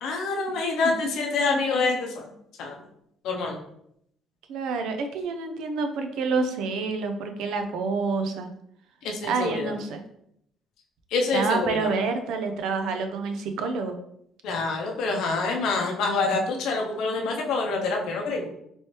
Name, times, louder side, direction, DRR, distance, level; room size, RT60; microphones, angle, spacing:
voice 1, 0.0-2.3 2.6-2.8 3.2-3.6 9.0-9.7 11.1-11.9 14.4-18.5, left 3 dB, 70° left, 1 dB, 0.6 m, -26 dB
voice 2, 4.5-8.5 9.2-10.0 11.3-14.0, right 4 dB, 75° right, 6 dB, 0.4 m, -28 dB
3.1 x 3.1 x 2.9 m, 0.74 s
cardioid pair, 160°, 0 cm